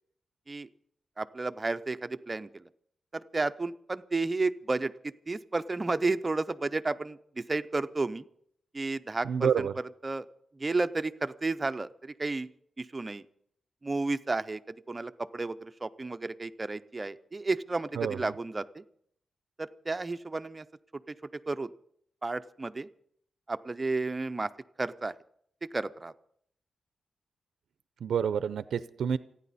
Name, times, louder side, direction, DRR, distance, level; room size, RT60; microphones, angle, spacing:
voice 1, 1.2-2.6 3.1-4.9 5.3-8.3 8.7-9.7 10.0-10.3 10.6-12.5 12.8-13.2 13.8-18.8 19.6-20.7 21.1-21.2 21.5-21.7 22.2-22.9 23.5-24.5 24.8-25.1 25.7-26.1, right 3 dB, 20° right, 11 dB, 0.5 m, -32 dB
voice 2, 9.2-9.7 18.0-18.2 28.0-29.2, right 7 dB, 80° right, 14 dB, 0.5 m, -28 dB
29.5 x 10.0 x 4.1 m, 0.68 s
wide cardioid pair, 170°, 0 cm